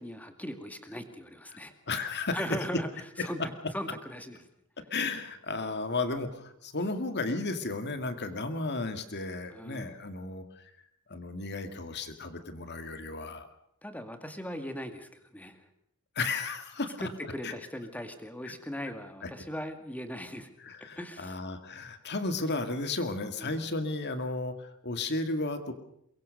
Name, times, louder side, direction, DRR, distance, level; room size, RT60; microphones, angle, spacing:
voice 1, 0.0-1.7 2.3-2.9 3.2-4.4 9.5-9.9 13.8-15.6 17.0-20.5 21.0-21.4 23.4-23.6, equal, 5° left, 7 dB, 2.1 m, -39 dB
voice 2, 1.9-2.5 3.2-3.3 4.9-10.7 11.1-13.5 16.2-17.1 17.4-17.5 19.2-19.3 20.6-25.7, left 3 dB, 50° left, 8 dB, 2.2 m, -34 dB
23.0 x 22.5 x 6.6 m, 0.73 s
head